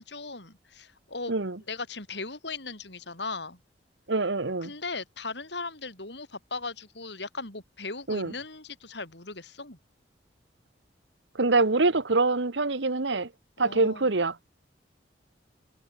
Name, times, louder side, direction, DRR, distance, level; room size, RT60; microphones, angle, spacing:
voice 1, 0.0-1.3 1.7-3.6 4.6-9.8 13.6-14.1, left 3 dB, 70° left, 5.5 m, -38 dB
voice 2, 4.1-4.7 8.1-8.3 11.4-13.3 13.6-14.3, right 3 dB, 75° right, 1.3 m, -25 dB
head